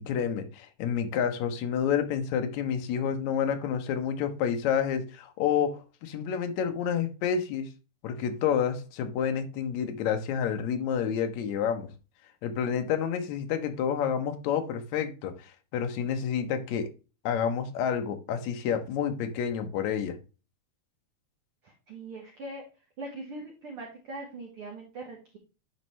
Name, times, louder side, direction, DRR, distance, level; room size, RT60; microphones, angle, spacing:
voice 1, 0.0-7.7 8.0-11.9 12.4-16.9 17.2-20.2, left 8 dB, 70° left, 7 dB, 2.1 m, -29 dB
voice 2, 21.6-22.6 23.0-25.4, right 2 dB, 55° right, 0 dB, 1.8 m, -41 dB
9.7 x 4.5 x 3.1 m, 0.32 s
omnidirectional pair, 3.6 m